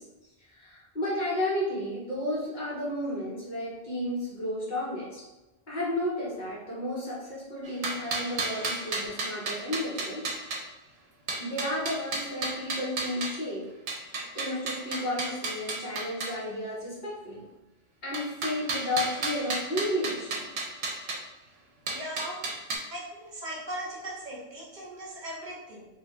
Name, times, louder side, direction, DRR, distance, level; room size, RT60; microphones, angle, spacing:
voice 1, 0.5-5.2 5.7-10.3 11.4-13.6 14.3-17.4 18.0-20.5, left 1 dB, 50° left, -7 dB, 1.2 m, -32 dB
sound 1, 7.6-10.6 11.3-13.4 13.9-16.4 18.1-21.2 21.9-22.8, right 3 dB, 80° right, 0.8 m, -33 dB
voice 2, 21.9-22.4 22.9-25.9, right 1 dB, 50° right, -5 dB, 0.9 m, -38 dB
2.7 x 2.2 x 3.0 m, 1.0 s
omnidirectional pair, 1.0 m